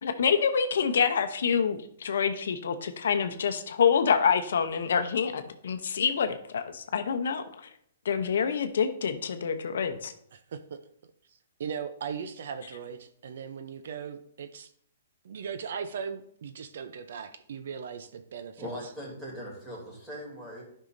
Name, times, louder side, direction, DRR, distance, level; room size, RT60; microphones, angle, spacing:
voice 1, 0.0-7.4 8.0-10.1, left 6 dB, 75° left, 8 dB, 0.7 m, -26 dB
voice 2, 10.3-10.8 11.6-14.7 15.2-18.7, right 7 dB, 65° right, 10 dB, 0.6 m, -38 dB
voice 3, 18.6-20.6, equal, 5° right, -4 dB, 2.8 m, -40 dB
11.5 x 5.5 x 2.6 m, 0.67 s
hypercardioid pair, 160°, 0 cm